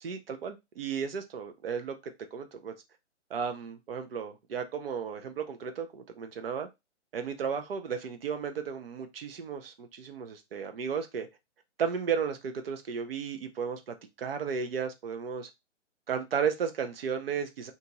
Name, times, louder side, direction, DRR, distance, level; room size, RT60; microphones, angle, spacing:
voice 1, 0.0-2.7 3.3-6.7 7.1-11.3 11.8-15.5 16.1-17.7, right 6 dB, 50° right, 0.8 m, -34 dB
3.0 x 2.6 x 3.7 m
hypercardioid pair, 145°, 36 cm